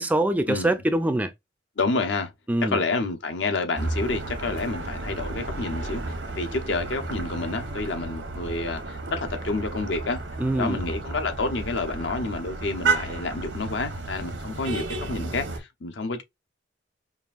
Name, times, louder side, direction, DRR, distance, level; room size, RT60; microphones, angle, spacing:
voice 1, 0.0-1.3 2.5-2.8 10.4-10.9, right 1 dB, 10° right, 0.3 m, -24 dB
voice 2, 1.8-2.3 2.6-10.2 10.6-16.2, left 3 dB, 70° left, 0.8 m, -29 dB
sound 1, 3.8-15.6, right 3 dB, 90° right, 0.9 m, -32 dB
5.3 x 2.5 x 2.4 m
head